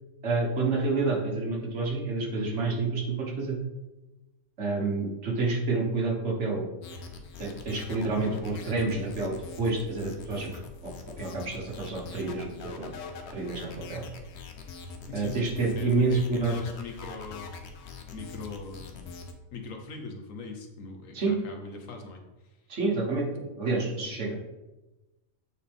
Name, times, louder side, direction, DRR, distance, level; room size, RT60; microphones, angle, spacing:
voice 1, 0.2-3.6 4.6-6.6 7.4-10.5 10.8-10.9 11.2-12.9 13.3-14.0 15.1-16.6 21.1-21.3 22.7-24.3, right 3 dB, 60° right, -1 dB, 1.6 m, -28 dB
sound 1, 6.8-19.3, left 4 dB, 60° left, 1.0 m, -43 dB
voice 2, 15.1-15.4 15.7-19.1 19.5-22.2 24.0-24.1, left 4 dB, 75° left, 4 dB, 1.4 m, -41 dB
8.2 x 4.5 x 3.5 m, 1.1 s
omnidirectional pair, 1.4 m